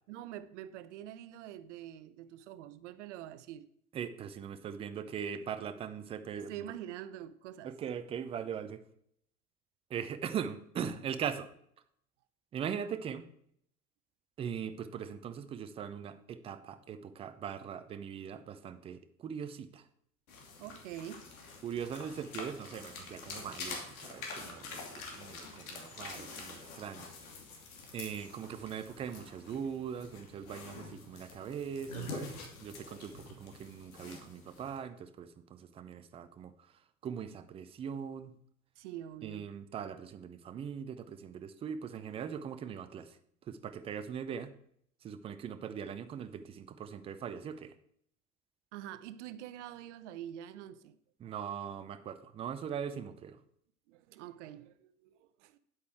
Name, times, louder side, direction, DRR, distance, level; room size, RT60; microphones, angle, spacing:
voice 1, 0.1-3.7 6.3-7.7 20.6-21.3 38.8-39.5 48.7-51.0 51.2-51.4 51.6-51.7 53.9-55.6, right 11 dB, 50° right, 0.8 m, -46 dB
voice 2, 3.9-6.5 7.6-8.8 9.9-11.5 12.5-13.3 14.4-19.8 21.6-27.1 27.9-32.3 32.6-36.5 37.0-38.3 39.2-43.1 43.5-44.5 45.0-47.7 51.2-53.4, right 7 dB, 15° right, 0.5 m, -40 dB
sound 1, 20.3-34.8, left 3 dB, 60° left, 2.7 m, -46 dB
9.8 x 8.2 x 4.5 m
figure-of-eight pair, 85°, 47 cm